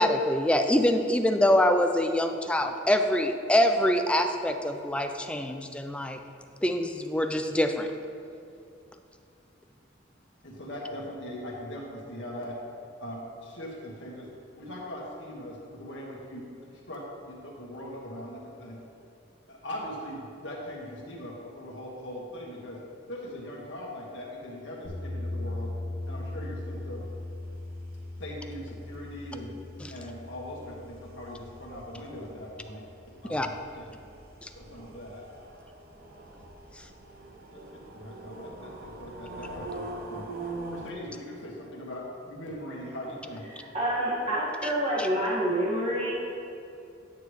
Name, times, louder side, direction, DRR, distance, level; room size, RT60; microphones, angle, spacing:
voice 1, 0.0-6.2 6.6-7.9 33.3-33.5 34.4-34.5 45.0-45.1, left 1 dB, 5° left, 5 dB, 0.4 m, -25 dB
voice 2, 10.4-12.6 13.0-14.3 14.6-18.8 19.5-22.8 23.1-25.7 26.1-27.1 28.2-29.5 29.9-32.8 33.2-34.1 34.6-35.2 37.5-40.4 40.7-43.5, equal, 80° left, -3 dB, 1.7 m, -40 dB
sound 1, 24.8-32.9, left 2 dB, 45° left, 1.5 m, -39 dB
sound 2, 26.1-40.9, right 2 dB, 55° right, 0.9 m, -44 dB
voice 3, 43.5-46.1, right 1 dB, 35° right, -7 dB, 1.9 m, -27 dB
9.4 x 8.2 x 3.2 m, 2.6 s
head